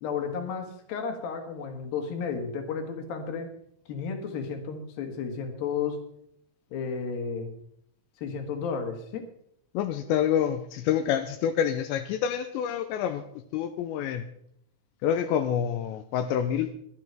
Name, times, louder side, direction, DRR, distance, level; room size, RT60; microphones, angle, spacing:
voice 1, 0.0-3.5 3.9-6.0 6.7-7.5 8.2-9.3, left 6 dB, 60° left, 5 dB, 3.1 m, -33 dB
voice 2, 9.7-13.2 13.5-14.2 15.0-16.7, left 9 dB, 85° left, 8 dB, 2.9 m, -27 dB
15.5 x 11.0 x 4.5 m, 0.72 s
omnidirectional pair, 5.2 m